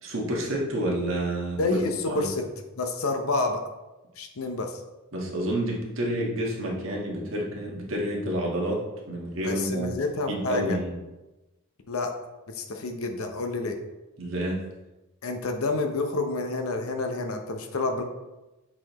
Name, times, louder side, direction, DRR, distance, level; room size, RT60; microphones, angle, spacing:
voice 1, 0.0-1.8 2.1-2.3 5.1-8.8 9.1-9.9 10.3-10.9 14.2-14.6, right 1 dB, 65° right, -2 dB, 1.5 m, -29 dB
voice 2, 1.6-2.5 2.8-3.6 4.2-4.8 9.4-10.8 11.9-12.1 12.5-13.8 15.2-18.0, left 3 dB, 85° left, 5 dB, 0.8 m, -28 dB
7.4 x 4.3 x 3.0 m, 1.1 s
head